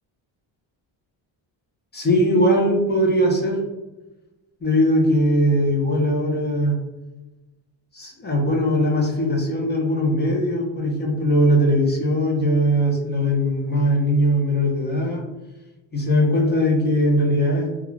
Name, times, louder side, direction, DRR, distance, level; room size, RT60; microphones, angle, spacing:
voice 1, 1.9-3.6 4.6-6.8 7.9-15.2 15.9-17.7, equal, 20° left, -1 dB, 0.6 m, -20 dB
2.4 x 2.3 x 3.0 m, 1.1 s
cardioid pair, 135°, 46 cm